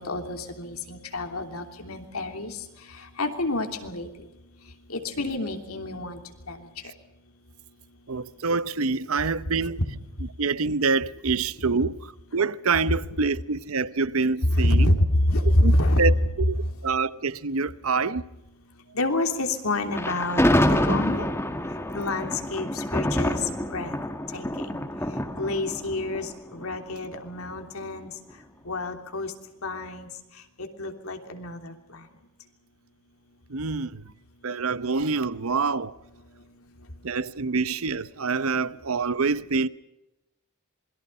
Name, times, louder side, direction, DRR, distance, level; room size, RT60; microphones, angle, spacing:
voice 1, 0.0-2.6 3.0-4.1 4.9-6.2 6.5-6.7 14.5-16.0 18.9-20.4 20.7-21.3 21.9-23.4 23.7-23.9 24.3-24.8 25.4-28.1 28.6-29.3 29.6-30.1 30.6-32.0, left 1 dB, 75° left, 3.1 m, -27 dB
voice 2, 8.1-9.8 10.4-12.1 12.3-15.0 15.6-18.2 33.5-34.0 34.4-35.9 37.0-39.7, right 4 dB, 70° right, 0.8 m, -26 dB
Thunder, 19.9-27.1, left 1 dB, 10° left, 1.9 m, -26 dB
27.5 x 22.0 x 5.6 m
head